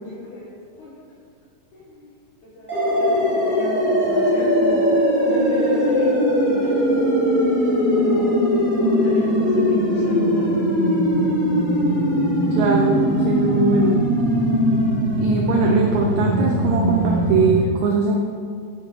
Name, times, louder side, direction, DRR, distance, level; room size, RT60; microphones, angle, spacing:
voice 1, 0.0-1.0 1.7-2.2 2.4-6.8 7.6-8.4 8.8-10.6, left 2 dB, 65° left, -4 dB, 2.7 m, -32 dB
sound 1, 2.7-17.6, equal, 5° right, 2.5 m, -20 dB
voice 2, 12.6-14.0 15.2-18.2, right 4 dB, 75° right, 1 dB, 1.8 m, -21 dB
13.5 x 6.6 x 5.0 m, 2.3 s
omnidirectional pair, 4.2 m